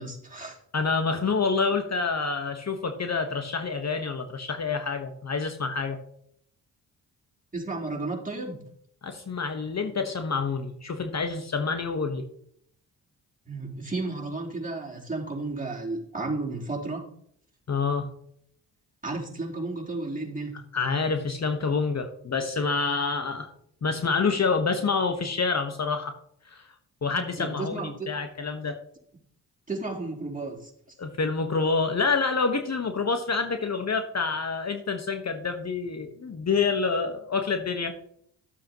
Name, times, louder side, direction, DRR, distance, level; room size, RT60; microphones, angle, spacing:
voice 1, 0.0-0.6 7.5-8.6 13.5-17.1 19.0-20.5 27.1-28.1 29.7-31.0, right 3 dB, 20° right, -3 dB, 3.8 m, -33 dB
voice 2, 0.7-6.0 9.0-12.2 17.7-18.1 20.7-23.5 23.8-26.1 26.5-26.6 27.0-28.8 31.0-38.0, left 4 dB, 40° left, 7 dB, 1.2 m, -27 dB
13.0 x 7.6 x 3.0 m, 0.68 s
supercardioid pair, 45°, 41 cm